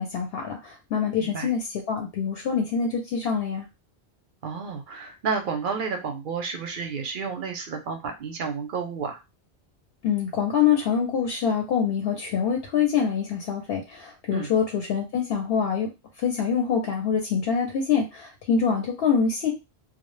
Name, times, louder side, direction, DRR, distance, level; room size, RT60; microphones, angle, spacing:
voice 1, 0.0-3.7 10.0-15.9 16.2-19.5, left 7 dB, 70° left, 1 dB, 0.8 m, -25 dB
voice 2, 1.2-1.5 4.4-9.2 14.3-14.5, right 5 dB, 60° right, 4 dB, 0.6 m, -31 dB
2.0 x 2.0 x 3.0 m, 0.25 s
omnidirectional pair, 1.1 m